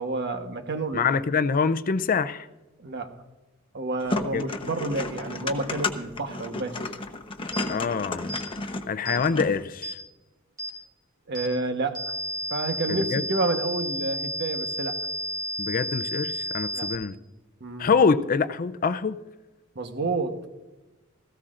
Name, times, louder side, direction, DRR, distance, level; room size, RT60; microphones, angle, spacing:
voice 1, 0.0-1.1 2.8-3.2 3.7-6.8 11.3-12.1 12.5-15.0 16.7-16.9 17.6-17.9 19.7-20.4, right 2 dB, 55° right, 1.2 m, -29 dB
voice 2, 0.9-2.5 4.3-4.5 7.7-8.3 8.9-10.0 12.9-13.2 15.6-17.1 17.8-19.2, left 5 dB, 40° left, 0.5 m, -25 dB
sound 1, 4.0-9.6, left 3 dB, 25° left, 0.9 m, -32 dB
sound 2, 7.5-7.7 8.3-8.5 9.1-9.2 9.8-10.0 10.6-10.7 11.4-11.5 12.0-17.0, equal, 15° right, 3.3 m, -32 dB
17.0 x 15.0 x 2.5 m
head